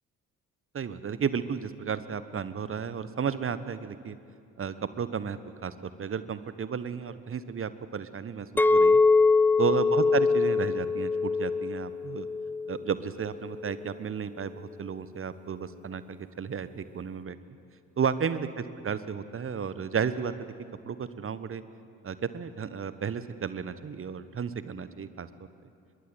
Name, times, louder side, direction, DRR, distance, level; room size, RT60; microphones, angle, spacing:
voice 1, 0.7-4.2 4.6-9.0 9.6-12.3 12.7-17.4 18.0-20.5 20.8-21.6 22.0-25.3, right 7 dB, 30° right, 14 dB, 1.3 m, -33 dB
Chink clink, 8.6-12.9 13.4-13.7, left 4 dB, 5° left, 0.5 m, -23 dB
24.0 x 22.0 x 8.0 m, 2.5 s
figure-of-eight pair, 45°, 40 cm